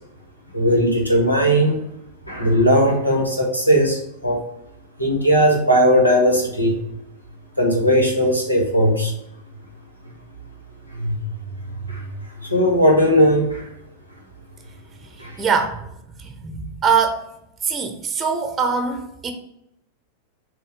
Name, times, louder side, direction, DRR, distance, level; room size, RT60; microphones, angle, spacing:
voice 1, 0.5-1.8 2.3-4.4 5.0-6.8 7.6-9.1 10.9-11.2 11.9-12.1 12.4-13.7 15.2-15.4, equal, 85° left, 0 dB, 1.7 m, -18 dB
voice 2, 15.4-15.8 16.2-17.2 17.6-19.3, right 6 dB, 20° right, 5 dB, 0.8 m, -22 dB
6.9 x 2.8 x 5.1 m, 0.81 s
figure-of-eight pair, 90°, 0 cm